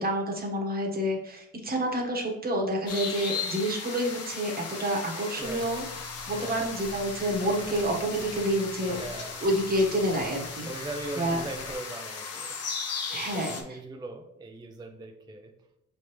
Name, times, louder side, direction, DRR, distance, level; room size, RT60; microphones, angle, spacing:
voice 1, 0.0-5.9 6.3-10.7 11.2-11.4 13.1-13.8, right 1 dB, 30° right, 0 dB, 1.1 m, -28 dB
sound 1, 2.9-13.6, left 5 dB, 55° left, 0.8 m, -37 dB
voice 2, 5.3-5.9 6.3-6.7 8.9-9.4 10.7-12.6 13.1-15.5, right 2 dB, 15° right, 4 dB, 0.4 m, -40 dB
Crackle, 5.4-11.7, left 2 dB, 25° left, 1.7 m, -46 dB
5.0 x 3.4 x 3.0 m, 0.77 s
cardioid pair, 90°, 30 cm